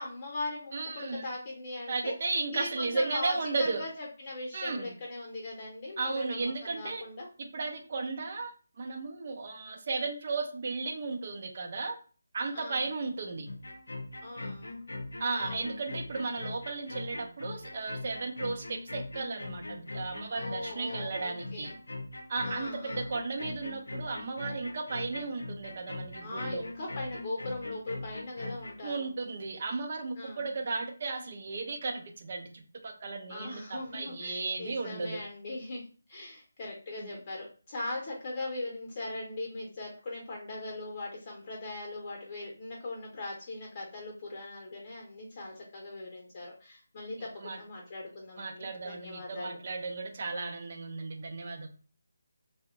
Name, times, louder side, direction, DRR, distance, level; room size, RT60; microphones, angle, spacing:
voice 1, 0.0-2.1 2.5-7.3 12.5-12.8 14.2-14.8 15.3-15.7 20.3-21.8 22.4-23.1 26.2-29.1 30.1-30.5 33.3-35.8 36.1-49.6, left 2 dB, 35° left, -2 dB, 0.8 m, -40 dB
voice 2, 0.7-1.3 1.9-3.8 4.5-4.9 6.0-7.0 7.4-8.5 8.8-12.0 12.3-13.5 15.2-21.7 22.3-26.6 28.8-35.2 37.0-37.2 47.4-47.6 48.4-51.7, right 3 dB, 45° right, 3 dB, 0.6 m, -35 dB
sound 1, 13.5-28.8, left 2 dB, 85° left, 0.5 m, -41 dB
2.8 x 2.1 x 3.5 m, 0.39 s
figure-of-eight pair, 160°, 0 cm